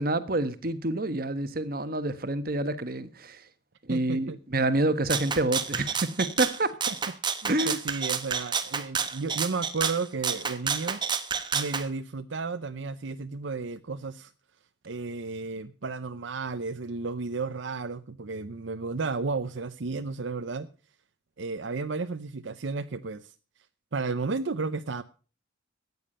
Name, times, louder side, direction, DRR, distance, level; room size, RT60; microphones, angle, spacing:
voice 1, 0.0-3.4 3.9-6.8 7.5-7.8, right 2 dB, 50° right, 1.2 m, -28 dB
voice 2, 3.9-4.4 6.9-7.0 7.4-11.0 11.5-14.3 14.8-20.7 21.4-23.3 23.9-25.0, right 4 dB, 70° right, 0.7 m, -33 dB
Rattle (instrument), 5.1-11.8, right 6 dB, 25° right, 1.1 m, -30 dB
14.0 x 9.5 x 5.4 m
head